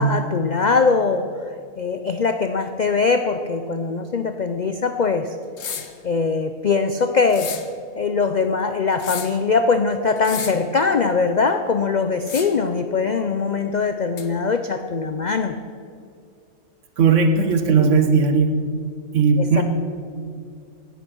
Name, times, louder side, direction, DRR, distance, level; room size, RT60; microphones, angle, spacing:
voice 1, 0.0-5.4 6.0-7.5 7.9-15.6 19.4-19.6, left 4 dB, 85° left, 8 dB, 0.4 m, -21 dB
sound 1, 5.6-6.0 7.3-7.7 8.9-9.4 10.2-10.7 12.2-12.7 14.2-14.3, left 7 dB, 55° left, 1.1 m, -32 dB
voice 2, 17.0-18.6 19.1-19.6, right 5 dB, 55° right, 7 dB, 1.4 m, -17 dB
16.0 x 10.0 x 6.1 m, 2.3 s
omnidirectional pair, 1.6 m